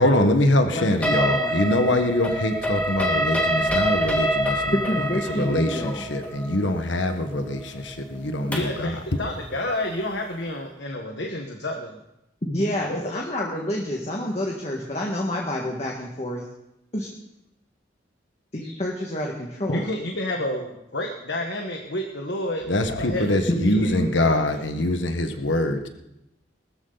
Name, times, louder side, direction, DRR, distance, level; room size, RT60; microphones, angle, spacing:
voice 1, 0.0-4.7 5.3-9.0 22.7-25.9, left 1 dB, 90° left, 7 dB, 1.5 m, -23 dB
voice 2, 0.7-1.9 4.7-6.0 12.4-16.4 16.9-17.1 18.5-19.8 23.5-24.1, left 1 dB, 35° left, -1 dB, 1.8 m, -28 dB
sound 1, 1.0-8.9, equal, 10° left, 2.0 m, -26 dB
voice 3, 8.5-12.0 12.9-13.2 19.7-24.4 24.8-24.9, left 1 dB, 75° left, 2 dB, 1.5 m, -30 dB
20.0 x 13.5 x 4.1 m, 0.87 s
head